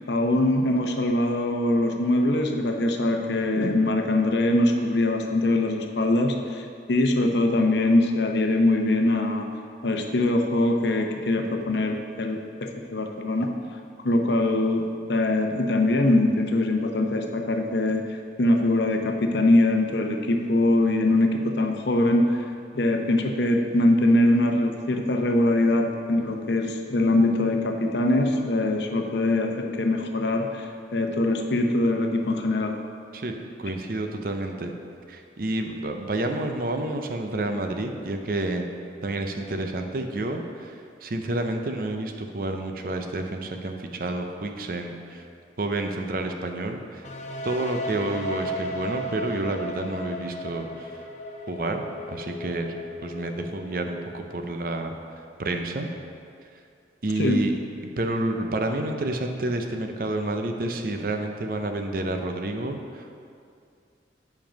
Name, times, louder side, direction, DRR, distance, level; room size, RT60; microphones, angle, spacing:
voice 1, 0.1-9.5 9.8-13.5 14.0-18.1 18.4-22.4 22.7-30.6 30.9-32.8 57.2-57.5, left 1 dB, 75° left, 4 dB, 0.7 m, -22 dB
voice 2, 33.1-34.7 35.1-38.7 39.0-45.3 45.6-47.1 47.4-50.9 51.5-52.8 53.0-54.9 55.4-55.9 57.0-57.5 58.0-63.1, right 2 dB, 55° right, 5 dB, 0.6 m, -29 dB
sound 1, 47.0-54.8, equal, 40° left, 0.6 m, -36 dB
7.7 x 5.3 x 5.2 m, 2.4 s
head